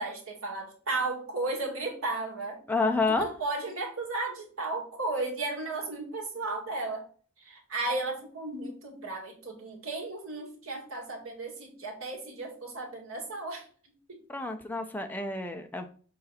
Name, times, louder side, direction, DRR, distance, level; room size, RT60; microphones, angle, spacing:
voice 1, 0.0-2.6 3.1-7.1 7.4-13.7 14.1-14.2, right 2 dB, 85° right, 0 dB, 2.2 m, -34 dB
voice 2, 2.7-3.3 14.3-15.9, left 3 dB, 10° left, 5 dB, 0.7 m, -29 dB
6.5 x 4.1 x 4.2 m, 0.42 s
head